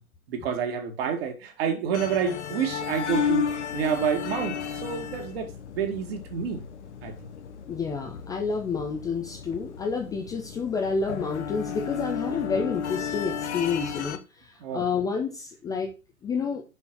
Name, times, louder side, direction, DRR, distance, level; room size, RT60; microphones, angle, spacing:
voice 1, 0.3-5.5 5.7-6.6 7.0-7.2 12.3-12.4 14.6-14.9, right 7 dB, 45° right, 2.2 m, -29 dB
sound 1, 1.9-14.2, left 7 dB, 55° left, 1.2 m, -33 dB
voice 2, 7.7-15.9 16.2-16.6, left 5 dB, 10° left, 0.6 m, -29 dB
6.4 x 5.8 x 6.0 m
figure-of-eight pair, 110°, 42 cm